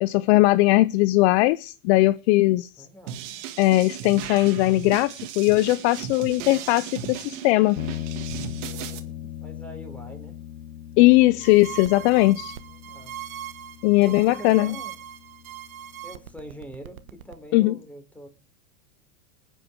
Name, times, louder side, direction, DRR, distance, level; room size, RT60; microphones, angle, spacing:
voice 1, 0.0-2.7 3.6-7.8 11.0-12.5 13.8-14.7 17.5-17.7, left 19 dB, 55° left, 0.6 m, -19 dB
voice 2, 2.8-3.3 8.9-10.4 12.7-13.1 14.0-15.0 16.0-18.3, equal, 5° left, 3.5 m, -43 dB
sound 1, 3.1-9.0, right 10 dB, 60° right, 2.3 m, -36 dB
sound 2, 7.8-17.2, left 11 dB, 75° left, 1.1 m, -39 dB
sound 3, 11.4-17.3, right 12 dB, 90° right, 1.1 m, -40 dB
22.0 x 9.1 x 3.6 m
hypercardioid pair, 115°, 40 cm